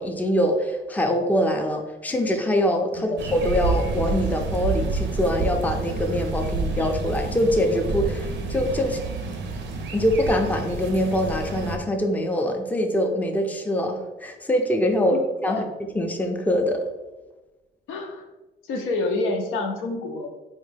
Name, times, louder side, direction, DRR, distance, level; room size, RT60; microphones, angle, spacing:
voice 1, 0.0-9.0 9.9-15.6 15.9-16.8, equal, 10° left, 4 dB, 0.4 m, -24 dB
sound 1, 3.2-11.8, right 3 dB, 65° right, 0.5 m, -28 dB
voice 2, 17.9-18.2 18.7-20.3, left 2 dB, 90° left, 4 dB, 0.6 m, -28 dB
3.5 x 2.1 x 3.3 m, 1.1 s
cardioid pair, 90°, 20 cm